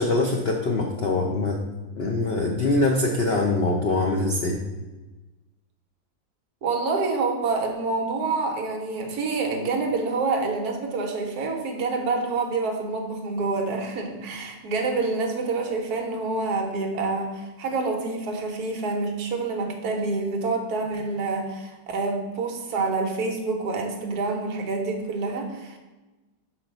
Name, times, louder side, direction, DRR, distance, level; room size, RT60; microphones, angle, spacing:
voice 1, 0.0-1.6 2.0-4.6, left 2 dB, 70° left, 0 dB, 0.5 m, -23 dB
voice 2, 6.6-25.8, right 3 dB, 65° right, 3 dB, 1.4 m, -27 dB
5.7 x 4.5 x 5.2 m, 1.2 s
omnidirectional pair, 1.9 m